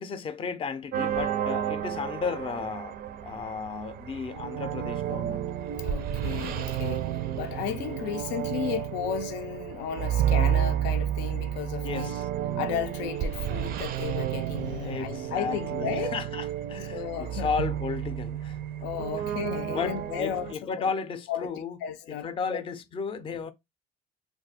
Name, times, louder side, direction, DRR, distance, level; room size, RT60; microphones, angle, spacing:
voice 1, 0.0-5.5 11.8-12.3 14.8-18.6 19.1-19.2 19.7-21.8 22.1-23.5, left 5 dB, 30° left, 0.4 m, -34 dB
sound 1, 0.9-20.5, right 10 dB, 55° right, 0.4 m, -31 dB
voice 2, 5.8-12.2 12.6-16.2 16.9-17.5 18.8-20.8 21.3-22.6, left 9 dB, 85° left, 0.4 m, -34 dB
2.4 x 2.3 x 3.9 m
cardioid pair, 120°, 18 cm